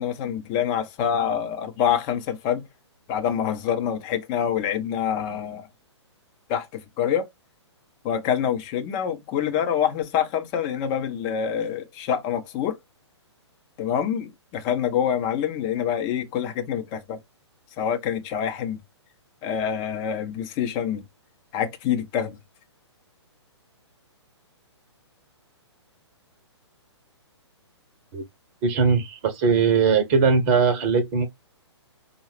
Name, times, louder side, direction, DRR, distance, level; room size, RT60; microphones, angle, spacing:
voice 1, 0.0-2.6 3.1-5.7 6.5-7.3 8.0-12.8 13.8-17.2 17.8-18.8 19.4-21.0 21.5-22.4, left 8 dB, 25° left, 0.8 m, -26 dB
voice 2, 28.6-31.3, right 5 dB, 30° right, 0.9 m, -20 dB
5.4 x 2.3 x 3.2 m
figure-of-eight pair, 120°, 15 cm